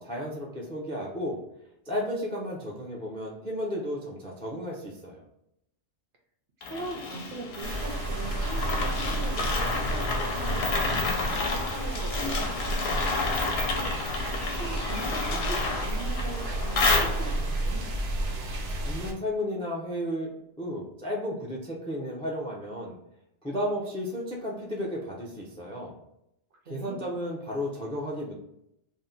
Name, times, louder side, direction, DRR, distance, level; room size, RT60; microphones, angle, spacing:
voice 1, 0.0-1.4 1.9-5.2 18.8-20.3 20.6-23.0 23.4-25.9 26.7-28.3, equal, 10° left, -1 dB, 0.3 m, -33 dB
sound 1, 6.6-17.6, left 3 dB, 70° left, 0.8 m, -30 dB
voice 2, 6.6-13.9 14.6-17.9 26.7-27.1, right 2 dB, 60° right, 1 dB, 0.7 m, -41 dB
sound 2, 7.6-19.1, right 2 dB, 85° right, 1.0 m, -32 dB
2.6 x 2.1 x 3.8 m, 0.79 s
omnidirectional pair, 1.2 m